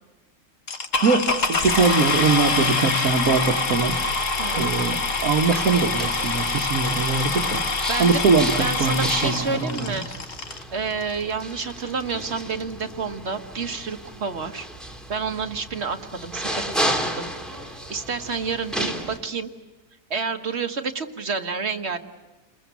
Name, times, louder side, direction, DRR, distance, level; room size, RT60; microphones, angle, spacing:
sound 1, 0.7-10.6 11.4-11.5 12.0-12.1 12.3-12.6, left 4 dB, 55° left, 1.8 m, -25 dB
voice 1, 1.0-4.0 4.6-7.6 8.0-9.8, right 4 dB, 65° right, 2 dB, 1.7 m, -22 dB
sound 2, 3.7-19.2, right 1 dB, ahead, 2.8 m, -34 dB
voice 2, 7.9-8.2 8.6-10.1 10.7-14.7 15.1-17.3 17.6-19.5 20.1-22.0, right 5 dB, 45° right, 6 dB, 1.7 m, -29 dB
29.5 x 21.0 x 8.2 m, 1.2 s
omnidirectional pair, 1.7 m